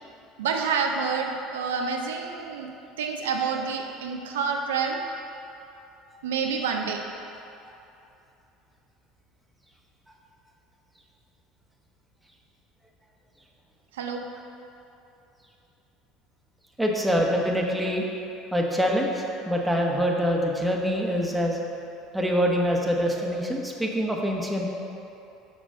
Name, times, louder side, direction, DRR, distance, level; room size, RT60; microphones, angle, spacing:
voice 1, 0.4-2.7 3.0-5.0 6.2-7.0 14.0-14.3, right 5 dB, 85° right, 2 dB, 0.5 m, -28 dB
voice 2, 16.8-18.0 18.5-21.6 22.1-24.6, equal, 5° right, -1 dB, 1.1 m, -25 dB
6.0 x 5.3 x 5.4 m, 2.8 s
hypercardioid pair, 80°, 0 cm